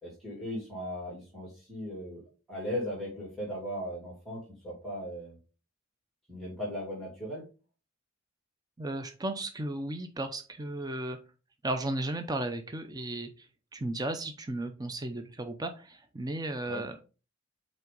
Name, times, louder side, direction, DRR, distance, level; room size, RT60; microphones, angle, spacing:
voice 1, 0.0-2.2 2.5-5.4 6.3-7.4 16.7-16.8, equal, ahead, -5 dB, 2.5 m, -37 dB
voice 2, 8.8-11.2 11.6-13.5 13.7-17.0, right 2 dB, 20° right, 7 dB, 0.5 m, -35 dB
5.6 x 4.4 x 3.8 m, 0.33 s
head